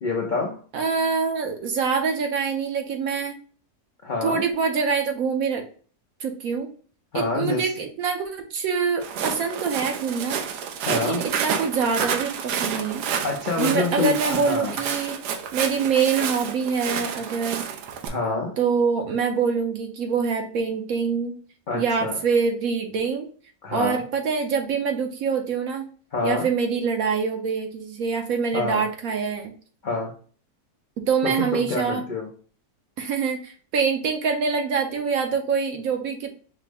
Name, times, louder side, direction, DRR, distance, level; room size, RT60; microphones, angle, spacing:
voice 1, 0.0-0.6 4.0-4.5 7.1-7.7 10.8-11.2 13.2-14.7 18.1-18.5 21.7-22.2 23.6-24.0 26.1-26.5 28.5-28.8 29.8-30.1 31.2-32.3, left 3 dB, 75° left, -1 dB, 0.4 m, -27 dB
voice 2, 0.7-3.4 4.2-5.6 6.2-6.7 7.1-10.4 10.9-13.1 13.6-15.2 15.5-17.6 18.6-21.3 21.7-23.3 23.7-25.9 26.2-29.5 31.0-32.0 33.0-36.3, right 5 dB, 65° right, 4 dB, 1.0 m, -25 dB
Walk footsteps, 9.0-18.1, right 7 dB, 90° right, 1.2 m, -29 dB
5.6 x 2.0 x 3.4 m, 0.42 s
omnidirectional pair, 1.7 m